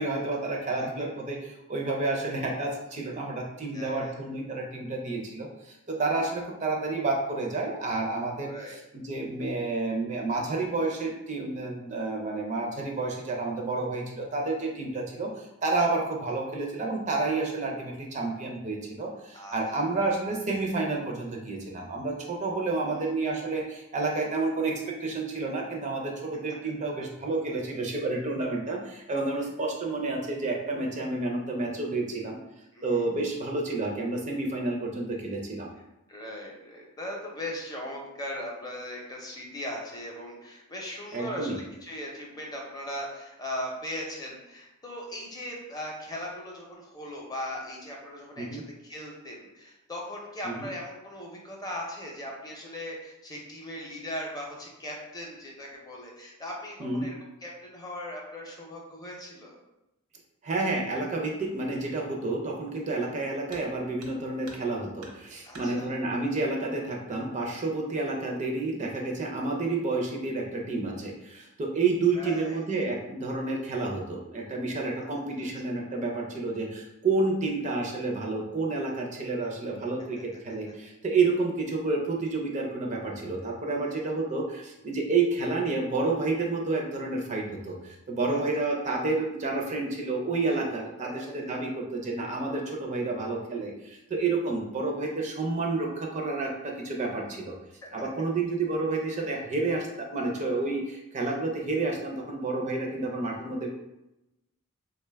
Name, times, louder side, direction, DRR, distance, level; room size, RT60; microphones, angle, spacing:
voice 1, 0.0-8.5 8.9-32.4 32.8-35.7 41.1-41.6 48.4-48.6 50.5-50.7 56.8-57.1 60.4-97.5 97.9-103.7, right 3 dB, 35° right, 0 dB, 0.4 m, -30 dB
voice 2, 3.7-4.2 8.5-8.7 19.3-19.9 22.7-23.1 32.7-33.2 36.1-59.6 65.4-66.0 72.1-72.6 75.0-75.1 75.4-75.5 83.6-84.1 88.3-88.4 91.0-91.5 97.8-98.3, left 1 dB, 20° left, -2 dB, 0.6 m, -39 dB
sound 1, 63.5-63.7 64.0-64.7 65.0-65.7 66.9-67.0 67.5-67.6 68.3-68.7 69.1-69.4, right 2 dB, 85° right, 0.8 m, -48 dB
3.7 x 2.2 x 3.3 m, 0.93 s
head